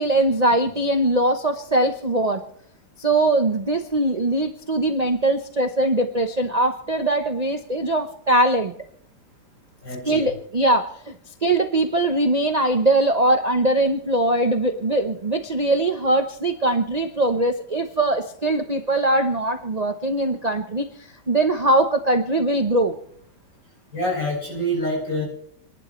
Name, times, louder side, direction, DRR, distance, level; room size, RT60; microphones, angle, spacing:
voice 1, 0.0-2.4 3.0-8.7 10.0-11.1 11.4-20.9 21.3-23.0, right 1 dB, 30° right, 5 dB, 0.7 m, -21 dB
voice 2, 9.8-10.3 23.9-25.3, equal, 65° left, -3 dB, 8.2 m, -26 dB
29.5 x 11.5 x 3.2 m, 0.67 s
omnidirectional pair, 2.0 m